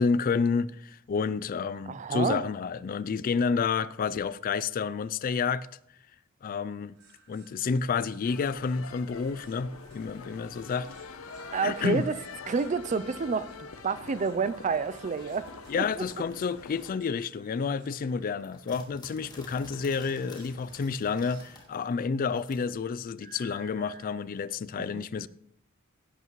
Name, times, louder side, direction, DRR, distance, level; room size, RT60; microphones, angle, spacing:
voice 1, 0.0-5.7 6.4-6.9 7.3-10.9 11.6-12.0 15.7-25.3, left 5 dB, 40° left, 0.3 m, -30 dB
voice 2, 1.9-2.4 11.5-12.2 12.5-15.5 15.8-15.9 24.8-25.1, right 5 dB, 35° right, 0.4 m, -29 dB
sound 1, 7.0-21.9 23.2-24.1, right 3 dB, 55° right, 5.2 m, -58 dB
sound 2, 8.2-16.9, left 4 dB, 80° left, 0.8 m, -45 dB
sound 3, 15.2-17.2 17.6-22.6, left 2 dB, 20° left, 2.0 m, -51 dB
16.0 x 8.1 x 3.1 m
head